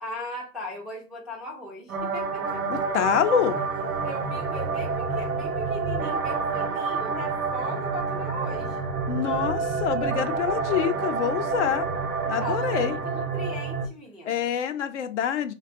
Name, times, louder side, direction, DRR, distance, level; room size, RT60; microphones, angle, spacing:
voice 1, 0.0-2.8 4.0-8.8 12.2-14.5, equal, ahead, 0.4 m, -38 dB
sound 1, 1.9-13.9, right 4 dB, 80° right, 1.0 m, -28 dB
voice 2, 2.7-3.6 9.1-11.9 12.3-12.9 14.3-15.5, left 9 dB, 60° left, 0.6 m, -26 dB
3.4 x 2.2 x 2.5 m
figure-of-eight pair, 100°, 41 cm